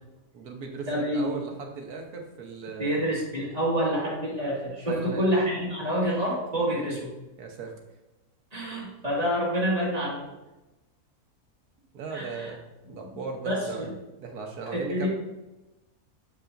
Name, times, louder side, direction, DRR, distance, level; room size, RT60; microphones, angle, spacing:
voice 1, 0.3-3.0 4.9-5.2 6.7-6.9 7.4-7.7 11.9-13.9 14.2-15.1, right 4 dB, 85° right, 2 dB, 1.5 m, -37 dB
voice 2, 0.9-1.4 2.8-7.1 8.5-10.3 12.1-12.5 12.9-13.0 13.4-13.9 14.7-15.1, equal, 25° right, -6 dB, 2.1 m, -27 dB
7.2 x 5.5 x 2.6 m, 1.0 s
omnidirectional pair, 1.5 m